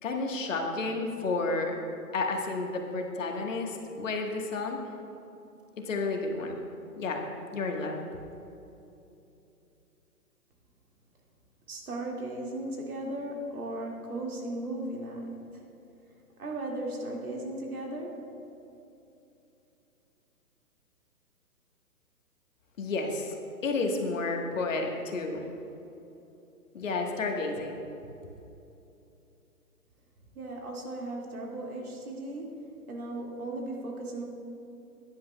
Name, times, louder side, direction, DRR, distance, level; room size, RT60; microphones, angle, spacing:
voice 1, 0.0-1.7 2.1-4.8 5.8-6.6 7.0-7.2 7.5-8.0 22.8-23.4 23.6-25.4 26.7-27.8, left 3 dB, 55° left, 2 dB, 1.4 m, -31 dB
voice 2, 11.7-15.6 16.4-18.2 30.3-34.2, right 1 dB, 65° right, -1 dB, 2.2 m, -36 dB
16.5 x 10.5 x 2.2 m, 2.8 s
figure-of-eight pair, 135°, 46 cm